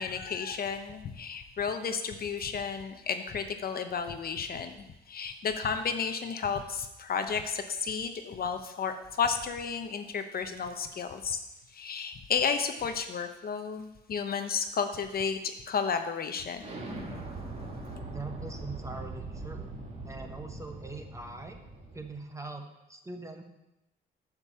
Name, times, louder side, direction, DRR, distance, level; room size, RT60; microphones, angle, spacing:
voice 1, 0.0-4.8 5.1-11.4 11.7-15.4 15.7-16.7, left 6 dB, 50° left, 7 dB, 0.8 m, -32 dB
Explosion, 16.6-22.1, right 2 dB, 30° right, 1.9 m, -41 dB
voice 2, 18.0-19.7 20.0-21.6 21.9-23.4, right 2 dB, 15° right, 4 dB, 1.2 m, -42 dB
8.3 x 5.3 x 7.3 m, 0.93 s
cardioid pair, 90°, 20 cm